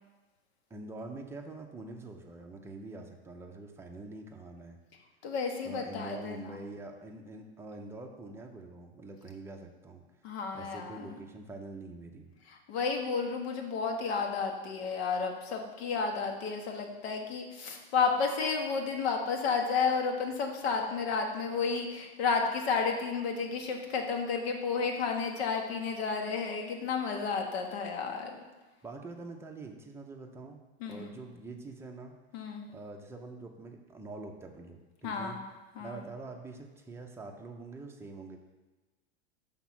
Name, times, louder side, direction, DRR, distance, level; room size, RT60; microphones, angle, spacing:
voice 1, 0.7-4.8 5.6-10.0 10.5-12.3 28.8-32.1 32.7-35.4 35.8-38.4, right 3 dB, 10° right, 2 dB, 0.6 m, -45 dB
voice 2, 5.2-6.6 10.2-11.1 12.5-28.4 30.8-31.1 32.3-32.6 35.0-35.4 35.8-36.0, left 5 dB, 70° left, 3 dB, 1.2 m, -32 dB
5.9 x 3.6 x 5.9 m, 1.2 s
supercardioid pair, 125°, 32 cm